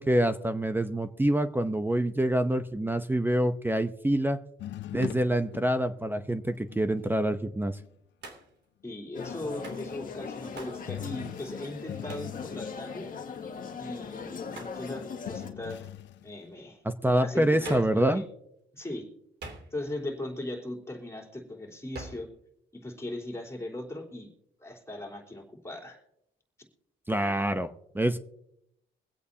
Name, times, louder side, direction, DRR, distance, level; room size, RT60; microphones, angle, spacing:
voice 1, 0.0-4.4 4.9-7.8 16.8-18.2 27.1-28.2, right 1 dB, 10° right, 10 dB, 0.7 m, -26 dB
sound 1, 4.6-7.1 7.7-7.9 10.9-16.5 18.0-18.1, left 13 dB, 65° left, 0.5 m, -43 dB
Hands, 8.2-8.6 9.6-9.9 10.6-10.8 12.1-12.4 14.5-14.8 17.6-18.0 19.4-20.0 21.9-22.3, right 3 dB, 60° right, 2.9 m, -43 dB
voice 2, 8.8-13.1 13.8-15.9 16.2-16.8 17.2-18.2 18.7-19.1 19.7-22.3 22.7-24.3 24.6-26.0, left 1 dB, 15° left, -1 dB, 3.6 m, -38 dB
sound 2, 9.1-15.5, left 5 dB, 45° left, 1.7 m, -40 dB
24.0 x 8.4 x 2.8 m, 0.77 s
cardioid pair, 90°, 20 cm